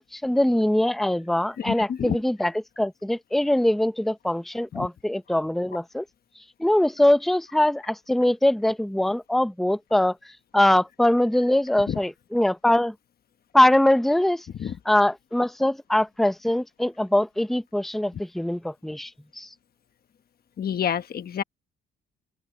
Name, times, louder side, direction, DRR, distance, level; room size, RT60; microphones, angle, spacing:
voice 1, 0.0-6.0 6.6-10.2 10.5-12.9 13.5-14.5 14.9-19.1 19.4-19.5, left 1 dB, ahead, 0.9 m, -22 dB
voice 2, 1.6-2.2 4.7-4.9 11.9-12.0 14.6-14.7 20.6-21.4, left 8 dB, 50° left, 1.3 m, -28 dB
open air
cardioid pair, 90°, 20 cm